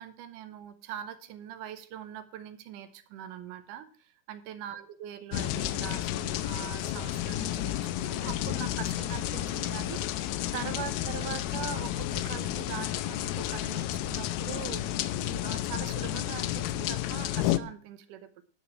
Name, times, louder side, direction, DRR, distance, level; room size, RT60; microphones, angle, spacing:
voice 1, 0.0-10.0 10.5-14.8 15.2-18.4, right 10 dB, 90° right, 11 dB, 2.5 m, -42 dB
sound 1, 5.3-17.6, left 13 dB, 80° left, 1.7 m, -31 dB
10.5 x 4.9 x 6.9 m, 0.43 s
omnidirectional pair, 3.6 m